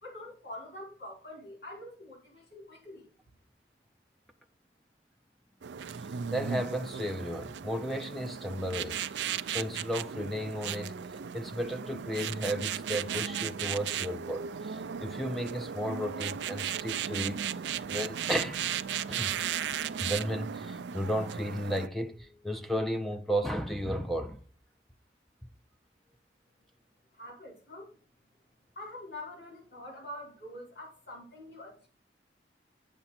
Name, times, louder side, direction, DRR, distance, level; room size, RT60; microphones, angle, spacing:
voice 1, 0.0-3.1 27.1-28.0 28.7-31.9, left 1 dB, 70° left, 4.5 m, -45 dB
sound 1, 5.6-21.9, right 8 dB, 85° right, 0.4 m, -36 dB
voice 2, 6.3-10.9 11.3-17.4 17.9-18.6 19.1-19.3 20.0-24.4, equal, ahead, 0.6 m, -34 dB
8.7 x 6.8 x 4.3 m
head